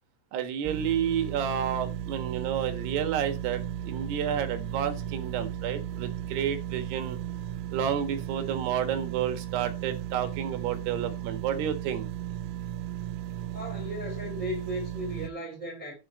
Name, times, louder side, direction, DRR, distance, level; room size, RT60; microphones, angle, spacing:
voice 1, 0.3-7.2 7.7-12.1, right 9 dB, 65° right, 3.3 m, -30 dB
sound 1, 0.6-15.3, right 11 dB, 85° right, 3.3 m, -35 dB
voice 2, 13.5-15.9, equal, 20° right, 2.6 m, -36 dB
10.0 x 8.3 x 4.2 m
omnidirectional pair, 5.5 m